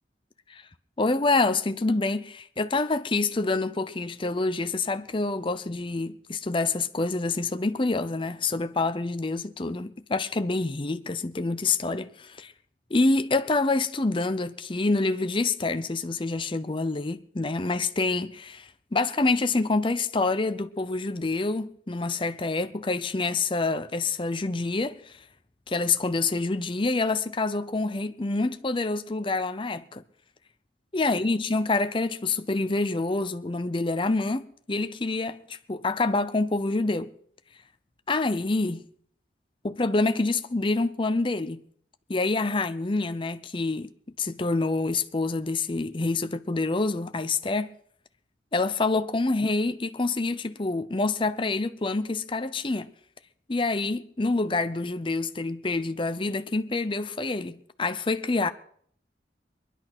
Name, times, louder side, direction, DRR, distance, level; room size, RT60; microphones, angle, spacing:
voice 1, 1.0-12.5 12.9-25.1 25.7-30.0 30.9-37.1 38.1-38.8 39.6-41.6 42.1-43.9 44.2-47.7 48.5-52.9 53.5-58.5, left 3 dB, 30° left, 0.6 m, -27 dB
21.5 x 11.0 x 6.1 m
head